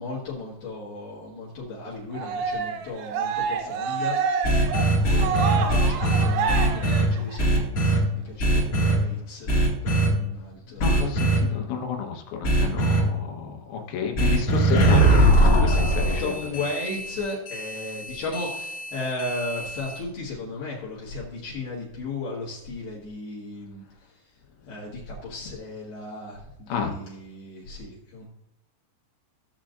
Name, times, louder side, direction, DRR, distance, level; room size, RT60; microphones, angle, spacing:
voice 1, 0.0-4.6 5.1-9.5 9.8-10.8 15.4-23.8 24.7-28.3, left 2 dB, 60° left, -6 dB, 3.4 m, -35 dB
Cheering, 2.1-7.6, right 6 dB, 80° right, 3.3 m, -28 dB
sound 1, 4.4-7.0 7.4-8.0 8.4-8.9 9.5-10.1 10.8-11.4 12.4-13.0 14.2-20.0, right 1 dB, 40° left, 2.1 m, -21 dB
voice 2, 10.7-16.4 26.7-26.9, left 6 dB, 85° left, 2 dB, 3.7 m, -31 dB
15.5 x 7.2 x 2.6 m, 0.83 s
omnidirectional pair, 5.5 m